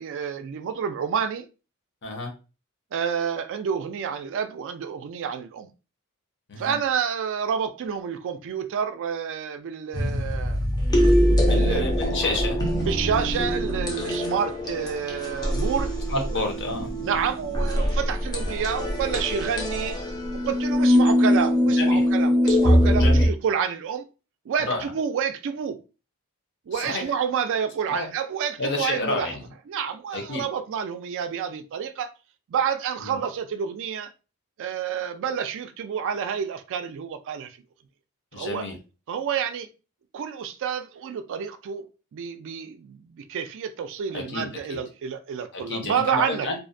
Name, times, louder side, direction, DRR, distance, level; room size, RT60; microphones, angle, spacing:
voice 1, 0.0-1.5 2.9-5.7 6.6-10.6 11.4-12.2 12.8-16.4 17.0-20.0 20.5-24.1 24.5-25.8 26.7-29.3 29.7-32.1 32.5-34.1 34.6-37.6 38.3-38.7 39.1-39.7 40.1-41.9 42.1-46.5, right 7 dB, 60° right, 0.3 m, -29 dB
sound 1, 9.9-23.3, equal, 15° left, 0.4 m, -22 dB
voice 2, 11.3-12.6 16.1-16.9 21.8-22.0 22.9-23.3 24.7-24.8 26.7-27.0 27.9-28.1 28.6-29.4 30.1-30.4 33.1-33.2 38.3-38.7 44.1-44.8 45.5-46.6, left 2 dB, 55° left, 0.7 m, -30 dB
2.5 x 2.0 x 2.5 m
head